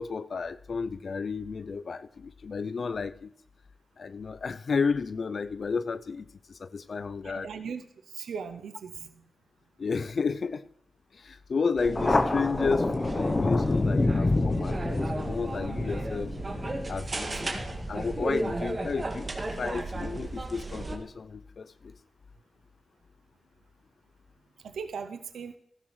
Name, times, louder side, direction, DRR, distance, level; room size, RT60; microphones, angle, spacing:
voice 1, 0.0-3.3 4.0-7.7 9.8-10.7 11.1-16.3 16.9-17.6 17.9-19.3 19.6-22.0, left 5 dB, 65° left, 13 dB, 0.4 m, -32 dB
voice 2, 7.2-7.8 8.1-9.1 24.6-25.5, right 6 dB, 90° right, 9 dB, 0.5 m, -38 dB
sound 1, 11.8-21.0, right 2 dB, 45° right, 1.8 m, -35 dB
Thunder, 11.9-19.0, left 2 dB, 40° left, 0.7 m, -28 dB
15.5 x 12.5 x 3.1 m, 0.70 s
cardioid pair, 50°, 0 cm